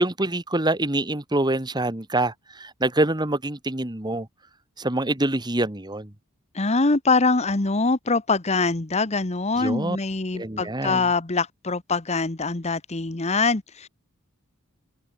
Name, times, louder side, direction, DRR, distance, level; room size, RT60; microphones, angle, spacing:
voice 1, 0.0-4.3 4.8-6.1 9.6-10.0 10.3-11.1, right 2 dB, 20° right, 1.7 m, -25 dB
voice 2, 6.5-13.9, left 3 dB, 30° left, 1.1 m, -23 dB
head